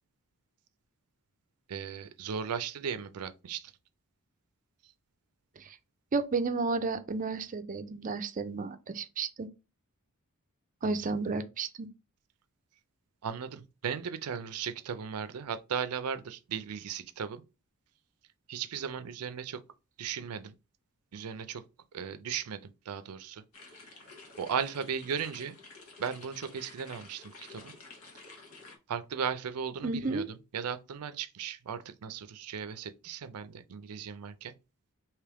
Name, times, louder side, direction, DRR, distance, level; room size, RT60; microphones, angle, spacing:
voice 1, 1.7-3.7 13.2-17.4 18.5-19.6 20.0-20.5 21.1-21.6 21.9-23.4 23.7-24.0 24.4-25.6 26.0-27.7 28.9-34.5, right 7 dB, 85° right, 0.5 m, -36 dB
voice 2, 6.1-9.5 10.8-11.9 29.8-30.3, right 4 dB, 35° right, 0.5 m, -32 dB
sound 1, 23.5-28.8, left 3 dB, 75° left, 1.3 m, -51 dB
3.4 x 2.9 x 4.7 m
head